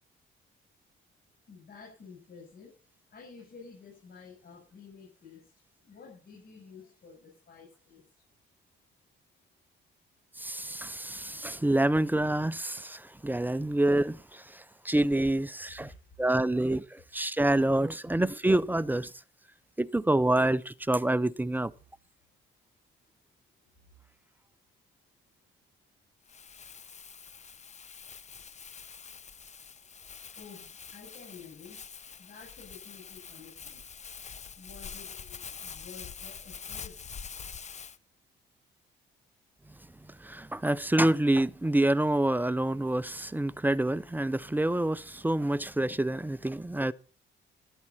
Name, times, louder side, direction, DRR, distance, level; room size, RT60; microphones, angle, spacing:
voice 1, 1.5-2.7 3.1-5.5 5.8-8.0 15.9-16.0 26.8-26.9 27.5-27.6 30.3-31.8 32.2-33.8 34.6-37.0, left 5 dB, 55° left, 7.8 m, -51 dB
voice 2, 10.4-15.9 16.2-19.1 19.8-21.7 40.2-46.9, right 1 dB, 10° right, 0.5 m, -27 dB
Crumpling crinkling, 26.3-38.0, left 6 dB, 35° left, 0.8 m, -45 dB
13.5 x 12.0 x 4.3 m
cardioid pair, 90°, 20 cm